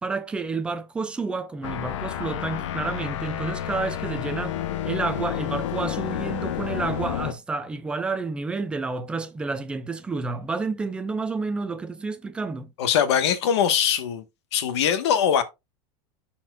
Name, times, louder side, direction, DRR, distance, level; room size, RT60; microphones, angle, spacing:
voice 1, 0.0-4.6 4.9-12.7, right 4 dB, 5° right, 0.4 m, -30 dB
sound 1, 1.6-7.3, left 11 dB, 90° left, 0.9 m, -30 dB
voice 2, 12.8-14.2 14.5-15.4, left 8 dB, 65° left, 1.2 m, -22 dB
12.5 x 4.3 x 2.3 m
supercardioid pair, 180°, 15 cm